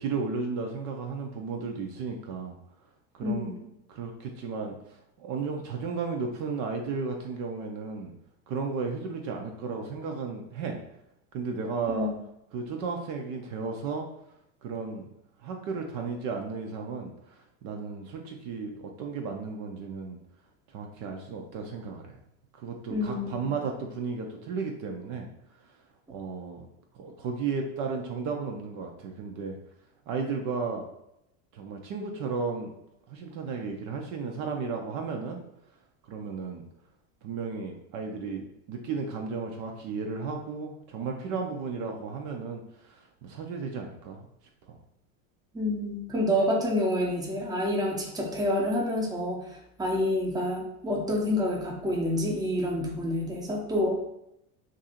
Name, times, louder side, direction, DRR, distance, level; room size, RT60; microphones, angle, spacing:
voice 1, 0.0-2.6 3.1-8.1 8.5-10.8 11.3-12.1 12.5-14.1 14.6-15.0 15.4-20.2 20.7-22.2 22.5-25.3 26.1-26.7 27.0-29.6 30.1-30.9 31.5-32.7 33.1-35.4 36.1-36.6 37.2-44.3 44.7-44.8, right 4 dB, 50° right, 2 dB, 0.6 m, -34 dB
voice 2, 3.2-3.6 11.9-12.1 22.9-23.5 45.5-54.1, left 1 dB, 10° right, -1 dB, 0.7 m, -28 dB
2.7 x 2.6 x 4.2 m, 0.82 s
hypercardioid pair, 95°, 43 cm